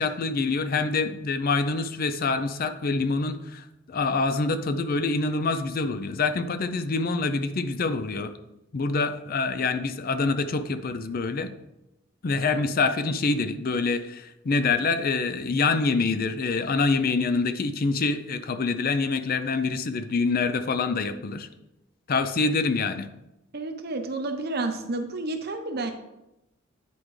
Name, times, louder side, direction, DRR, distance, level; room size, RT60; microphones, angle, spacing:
voice 1, 0.0-8.3 8.7-11.5 12.2-21.5 22.1-23.1, left 4 dB, 45° left, 10 dB, 0.5 m, -26 dB
voice 2, 23.5-25.9, right 2 dB, 50° right, 6 dB, 0.8 m, -30 dB
9.5 x 4.9 x 3.2 m, 0.91 s
head